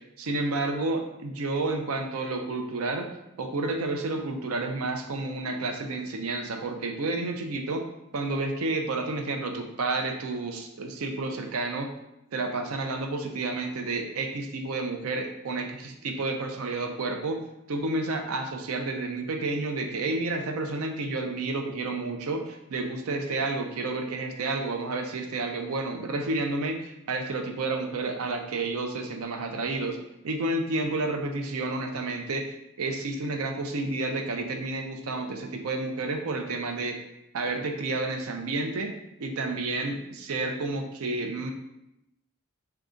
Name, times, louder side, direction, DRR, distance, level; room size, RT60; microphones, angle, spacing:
voice 1, 0.2-3.1 3.4-7.8 8.1-11.9 12.3-17.4 17.7-32.5 32.8-37.0 37.3-38.9 39.2-41.5, right 2 dB, 85° right, 4 dB, 0.5 m, -30 dB
3.7 x 2.3 x 3.7 m, 0.85 s
head